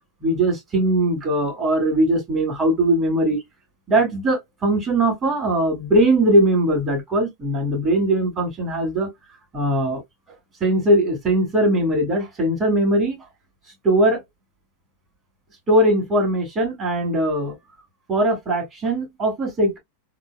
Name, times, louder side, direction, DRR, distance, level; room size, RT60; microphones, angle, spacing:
voice 1, 0.2-3.4 3.9-9.1 9.5-10.0 10.6-13.2 13.8-14.2 15.7-17.6 18.1-19.8, right 1 dB, 30° right, 2.2 m, -20 dB
3.8 x 2.0 x 2.2 m
hypercardioid pair, 105°, 0 cm